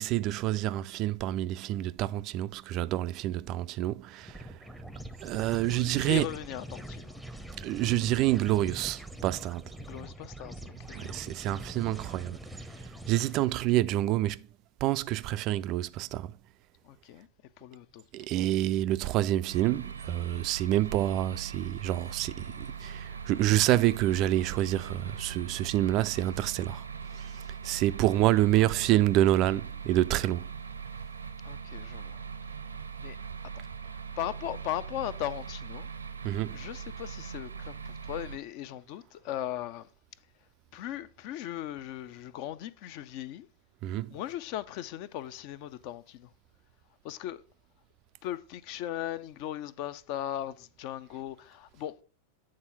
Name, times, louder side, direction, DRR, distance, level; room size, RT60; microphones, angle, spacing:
voice 1, 0.0-4.6 5.2-6.3 7.6-9.6 10.9-12.4 12.8-14.5 14.8-16.3 18.1-26.9 27.1-30.5 36.2-36.7 43.8-44.2, right 14 dB, 40° right, 0.3 m, -28 dB
sound 1, 4.2-13.7, right 1 dB, ahead, 0.7 m, -44 dB
voice 2, 5.8-7.2 9.8-11.2 16.8-17.3 17.6-18.0 18.3-18.5 28.6-29.0 31.4-32.2 33.0-33.2 34.2-35.9 36.5-39.9 40.7-43.5 44.1-46.3 47.0-47.4 48.2-51.9, left 12 dB, 45° left, 0.5 m, -38 dB
sound 2, 19.5-38.4, right 6 dB, 75° right, 0.6 m, -41 dB
8.8 x 3.8 x 5.7 m
figure-of-eight pair, 90°, 0 cm